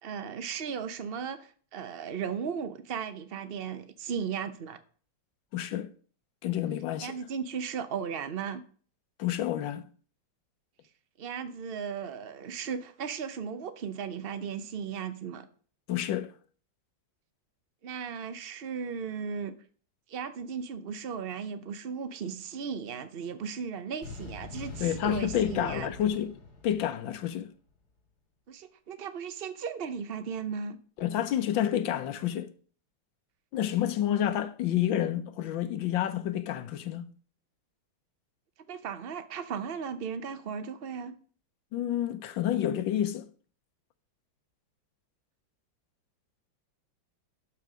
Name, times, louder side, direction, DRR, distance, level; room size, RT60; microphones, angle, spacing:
voice 1, 0.0-4.8 7.0-8.6 11.2-15.5 17.8-19.5 20.1-25.9 28.5-30.8 38.7-41.2, right 6 dB, 85° right, 0.5 m, -36 dB
voice 2, 5.5-5.9 6.4-7.1 9.2-9.8 15.9-16.3 24.8-26.3 26.6-27.5 31.0-32.5 33.5-37.1 41.7-43.3, left 11 dB, 75° left, 1.5 m, -29 dB
sound 1, 24.0-27.5, left 4 dB, 50° left, 2.7 m, -43 dB
12.0 x 5.7 x 6.1 m
omnidirectional pair, 2.2 m